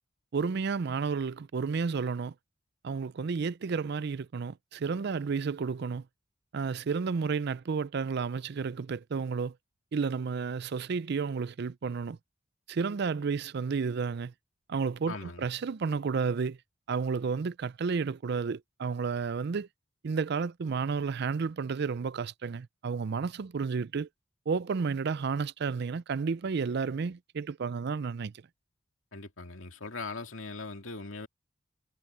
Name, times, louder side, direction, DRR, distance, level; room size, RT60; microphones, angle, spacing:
voice 1, 0.3-2.3 2.8-6.1 6.5-9.5 9.9-12.2 12.7-14.3 14.7-16.6 16.9-19.7 20.0-24.1 24.5-28.4, right 5 dB, 55° right, 0.4 m, -31 dB
voice 2, 15.1-15.4 29.1-31.3, left 3 dB, 85° left, 2.4 m, -40 dB
head